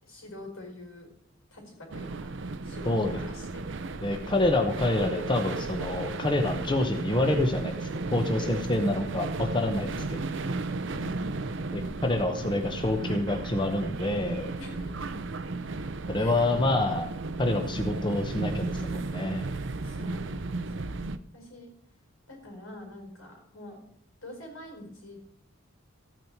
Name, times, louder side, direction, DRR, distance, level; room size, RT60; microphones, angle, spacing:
voice 1, 0.0-1.1 1.5-2.3 2.6-3.6 8.4-8.9 9.9-10.1 10.9-11.7 14.6-15.1 16.1-16.5 19.8-21.7 22.3-23.8 24.2-25.2, left 1 dB, 90° left, 2 dB, 4.8 m, -45 dB
sound 1, 1.9-21.2, right 3 dB, 60° right, 0.6 m, -34 dB
voice 2, 4.0-9.9 11.7-14.5 16.1-17.1 17.4-19.5, left 2 dB, 20° left, 5 dB, 0.9 m, -27 dB
14.0 x 9.0 x 4.6 m, 0.68 s
head